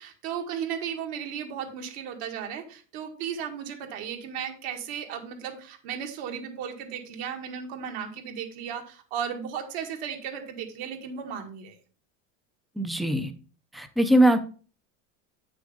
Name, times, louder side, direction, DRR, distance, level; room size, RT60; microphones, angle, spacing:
voice 1, 0.0-11.8, right 8 dB, 70° right, 3 dB, 1.9 m, -35 dB
voice 2, 12.8-13.3 13.7-14.4, right 1 dB, ahead, 8 dB, 0.3 m, -21 dB
8.5 x 6.2 x 3.6 m, 0.39 s
cardioid pair, 165°, 33 cm